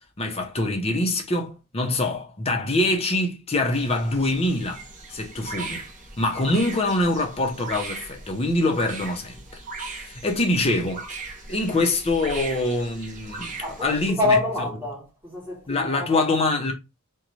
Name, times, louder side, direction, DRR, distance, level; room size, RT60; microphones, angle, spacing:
voice 1, 0.2-5.9 6.2-9.4 9.9-11.0 11.5-14.4 15.7-16.7, left 2 dB, 25° left, 0.6 m, -24 dB
sound 1, 3.7-14.1, right 3 dB, 35° right, 0.6 m, -38 dB
voice 2, 13.6-16.3, left 2 dB, 10° right, 1.2 m, -26 dB
2.5 x 2.2 x 3.0 m
head